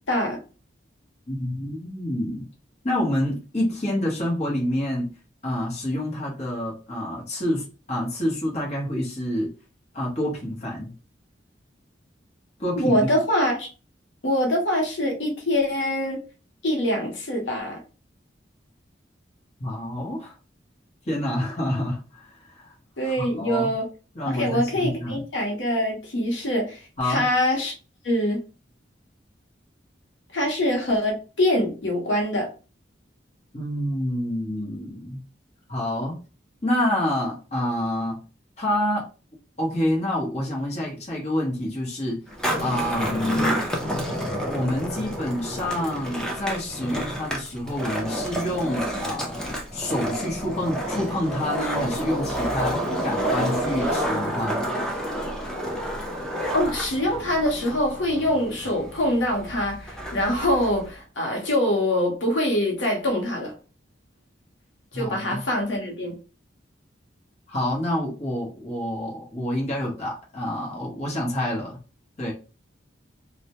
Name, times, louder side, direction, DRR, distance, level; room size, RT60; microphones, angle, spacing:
voice 1, 0.1-0.4 12.8-13.7 14.2-16.2 16.6-17.8 23.0-23.8 24.3-26.8 27.0-27.7 28.0-28.4 30.3-32.5 56.5-63.5 64.9-66.1, left 1 dB, 85° left, 1 dB, 0.7 m, -24 dB
voice 2, 1.3-2.4 2.8-5.1 5.4-9.5 9.9-10.9 12.6-13.1 19.6-20.3 21.1-22.7 23.0-23.7 24.1-25.2 27.0-27.2 33.5-35.2 35.7-36.2 36.6-38.2 38.6-39.1 39.6-42.2 42.6-43.6 44.4-54.6 64.9-65.4 67.5-71.8 72.2-72.3, left 1 dB, 35° left, -3 dB, 0.8 m, -27 dB
Skateboard, 42.3-60.9, equal, 5° left, 0.4 m, -29 dB
2.1 x 2.0 x 2.8 m, 0.33 s
head